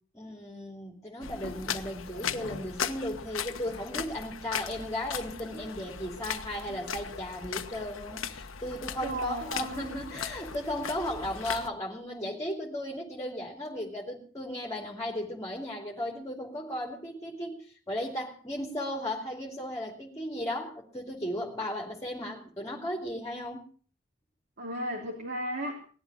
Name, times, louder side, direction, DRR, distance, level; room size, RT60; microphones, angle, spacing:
voice 1, 0.1-23.6, left 1 dB, 15° left, 1 dB, 2.7 m, -36 dB
sound 1, 1.2-11.7, left 7 dB, 75° left, 1.3 m, -38 dB
voice 2, 9.0-10.1 24.6-25.8, equal, 55° right, 0 dB, 3.3 m, -35 dB
19.0 x 12.0 x 6.3 m, 0.43 s
head